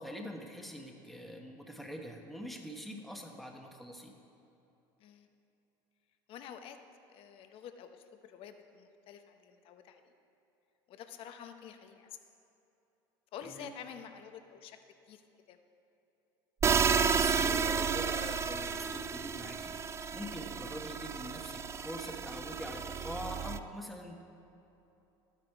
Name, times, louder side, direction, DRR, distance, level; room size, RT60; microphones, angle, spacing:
voice 1, 0.0-4.1 13.4-13.7 17.0-19.7 20.1-24.2, equal, ahead, 2 dB, 1.2 m, -44 dB
voice 2, 6.3-6.8 7.1-10.1 10.9-12.1 13.3-14.8 15.1-15.2 15.5-15.6, left 8 dB, 55° left, 7 dB, 0.8 m, -49 dB
sound 1, 16.6-23.6, right 6 dB, 25° right, 0.4 m, -32 dB
12.0 x 9.0 x 4.6 m, 2.9 s
supercardioid pair, 100°, 11 cm